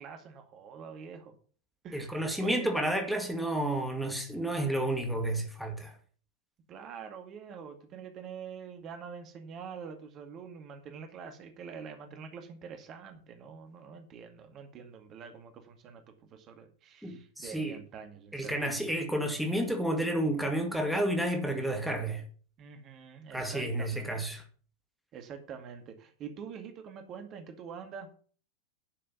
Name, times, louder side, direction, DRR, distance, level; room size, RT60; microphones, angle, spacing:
voice 1, 0.0-1.4 1.8-2.7 6.7-18.8 22.6-24.1 25.1-28.1, right 6 dB, 30° right, 2.0 m, -45 dB
voice 2, 1.9-5.9 17.0-17.8 18.3-22.2 23.3-24.4, right 1 dB, ahead, 2.1 m, -31 dB
10.5 x 6.6 x 7.1 m
figure-of-eight pair, 90°, 0 cm